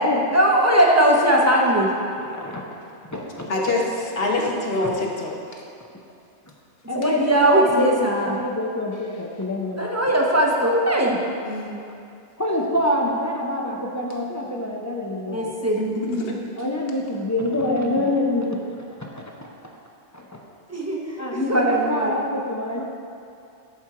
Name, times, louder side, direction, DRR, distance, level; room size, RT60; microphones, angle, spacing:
voice 1, 0.3-1.9 6.9-8.3 9.8-11.2 15.3-15.8 16.1-16.3 17.7-17.9 20.7-22.1, right 1 dB, 15° right, -2 dB, 0.7 m, -20 dB
voice 2, 1.3-1.8 2.1-2.6 3.1-3.7 6.9-10.0 10.6-10.7 12.4-15.8 16.6-18.6 19.2-19.5 20.1-20.4 21.2-22.8, left 1 dB, 20° left, -1 dB, 0.5 m, -26 dB
voice 3, 3.5-5.6 11.4-11.8 15.8-16.4, left 2 dB, 60° left, -1 dB, 1.2 m, -25 dB
10.5 x 4.4 x 4.8 m, 2.5 s
omnidirectional pair, 1.2 m